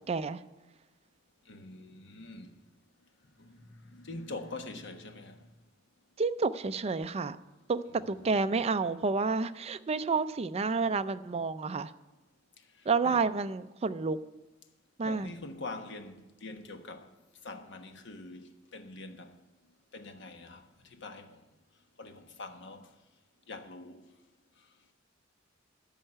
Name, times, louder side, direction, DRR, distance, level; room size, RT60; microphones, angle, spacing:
voice 1, 0.1-0.4 6.2-7.4 7.7-11.9 12.9-14.2 15.0-15.3, right 4 dB, 30° right, 0.4 m, -30 dB
voice 2, 1.5-2.6 3.4-5.4 7.9-8.6 12.8-13.2 15.0-17.1 17.4-19.4 19.9-21.4 22.0-22.9 23.5-24.0, left 2 dB, 65° left, 1.2 m, -45 dB
13.0 x 5.6 x 8.9 m
head